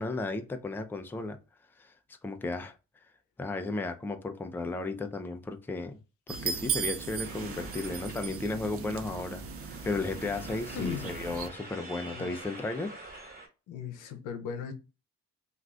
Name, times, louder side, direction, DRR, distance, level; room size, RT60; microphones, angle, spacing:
voice 1, 0.0-1.4 1.8-2.7 3.4-6.0 6.3-13.0, left 3 dB, 5° left, 0.4 m, -34 dB
sound 1, 6.3-11.5, right 6 dB, 50° right, 0.6 m, -37 dB
sound 2, 7.2-13.5, right 2 dB, 30° right, 1.4 m, -47 dB
voice 2, 10.7-11.1 12.1-12.4 13.7-14.7, left 7 dB, 90° left, 0.6 m, -37 dB
2.5 x 2.4 x 3.2 m
cardioid pair, 90°, 30 cm